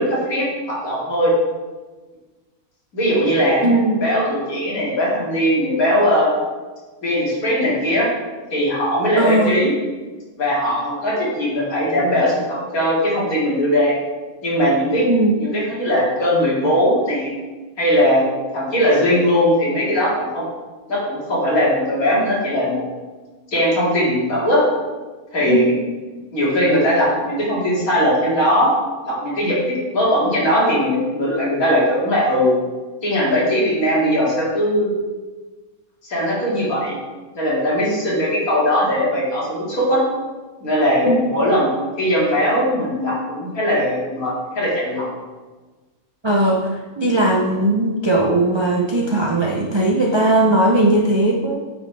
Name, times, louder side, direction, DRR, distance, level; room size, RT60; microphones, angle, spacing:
voice 1, 0.0-1.3 2.9-3.6 4.0-6.3 7.0-8.1 8.5-9.7 10.4-14.0 14.4-15.1 15.4-17.3 17.8-18.2 18.5-20.4 20.9-22.8 23.5-24.7 25.3-25.7 26.3-28.7 29.0-32.5 33.0-34.9 36.1-37.0 37.4-40.0 40.6-45.1, equal, 70° left, -6 dB, 2.8 m, -19 dB
voice 2, 3.6-4.1 9.2-9.5 15.1-15.3 25.4-25.7 41.1-41.2 46.2-51.7, right 1 dB, 40° right, -2 dB, 0.4 m, -18 dB
8.9 x 5.3 x 3.4 m, 1.3 s
omnidirectional pair, 1.6 m